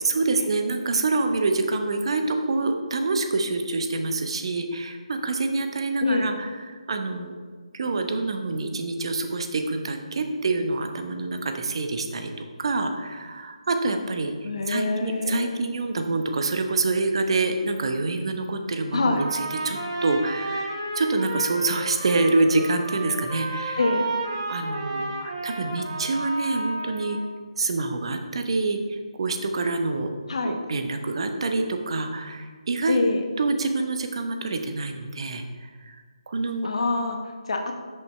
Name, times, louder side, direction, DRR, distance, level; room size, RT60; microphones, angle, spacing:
voice 1, 0.0-7.3 7.7-12.3 12.6-23.8 24.5-27.2 27.6-30.1 30.4-33.0 33.4-35.4 35.9-36.0 36.3-36.7, right 3 dB, 50° right, 6 dB, 1.0 m, -26 dB
voice 2, 6.0-6.3 14.4-15.7 18.9-19.2 23.8-24.1 30.3-30.6 32.9-33.2 36.6-37.7, left 3 dB, 60° left, 3 dB, 1.2 m, -25 dB
Trumpet, 19.2-27.3, right 2 dB, 35° right, 1.6 m, -32 dB
13.0 x 5.7 x 3.2 m, 1.6 s
figure-of-eight pair, 150°, 4 cm